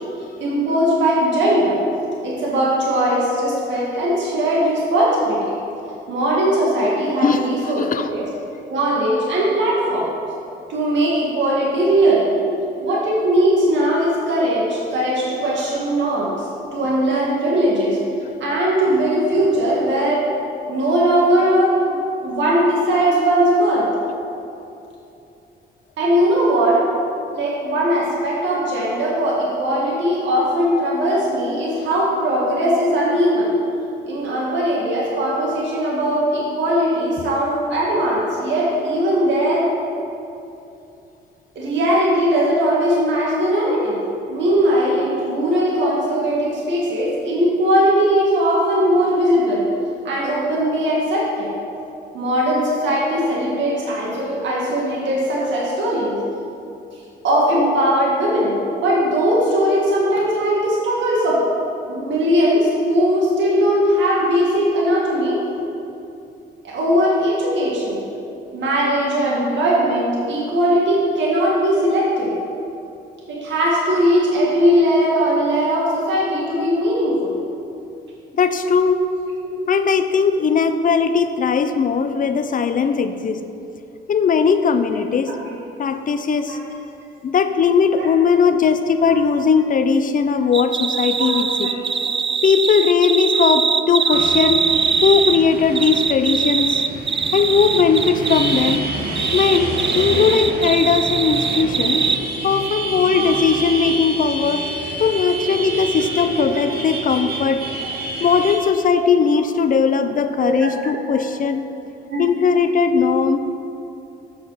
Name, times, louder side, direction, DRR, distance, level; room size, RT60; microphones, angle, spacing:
voice 1, 0.4-1.8 2.2-5.5 6.1-8.3 8.6-10.1 10.7-12.3 12.8-16.3 16.7-18.0 18.4-20.3 20.7-21.9 22.2-23.9 26.0-26.8 27.3-33.5 34.1-39.7 41.6-44.0 44.3-49.7 50.0-51.5 52.1-56.2 57.2-58.5 58.8-61.4 61.9-65.4 66.6-68.0 68.5-72.3 73.3-77.3 79.4-79.6 85.4-85.5 85.8-85.9 86.5-86.6 88.0-88.1 88.9-89.1 91.1-91.3 91.6-91.8 94.1-94.2 103.1-103.3 106.0-106.1 110.4-110.7 111.3-111.4 112.1-112.2 112.9-113.0, equal, 65° right, -5 dB, 1.9 m, -19 dB
voice 2, 7.8-8.1 37.2-37.3 78.3-79.1 79.7-83.4 84.1-85.4 85.8-86.6 87.2-91.7 92.4-94.7 95.0-96.8 97.3-98.8 99.3-102.0 102.4-104.6 105.0-107.6 108.2-111.6 112.2-113.4, left 6 dB, 45° left, 9 dB, 0.6 m, -18 dB
sound 1, 90.5-95.4 95.7-98.8 99.1-102.2, right 6 dB, 25° right, 0.4 m, -21 dB
sound 2, 94.1-108.6, right 2 dB, 50° right, 1.6 m, -28 dB
8.4 x 6.7 x 5.7 m, 2.8 s
cardioid pair, 90°, 20 cm